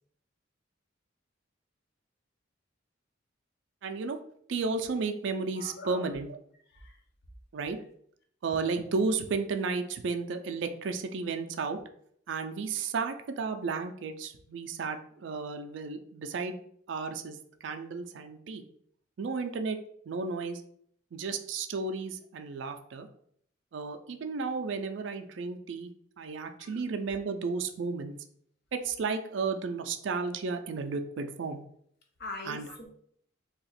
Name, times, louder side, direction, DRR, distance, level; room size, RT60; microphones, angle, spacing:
voice 1, 3.8-4.2 4.5-6.4 7.5-7.8 8.4-11.8 12.3-16.6 16.9-18.6 19.2-19.8 20.1-20.6 21.1-23.1 23.7-28.1 28.7-31.6 32.5-32.7, right 4 dB, 65° right, 7 dB, 0.4 m, -33 dB
voice 2, 5.5-6.1 6.7-7.0 26.6-26.8 32.2-32.9, left 2 dB, 55° left, 2 dB, 0.7 m, -42 dB
2.8 x 2.4 x 4.1 m, 0.65 s
head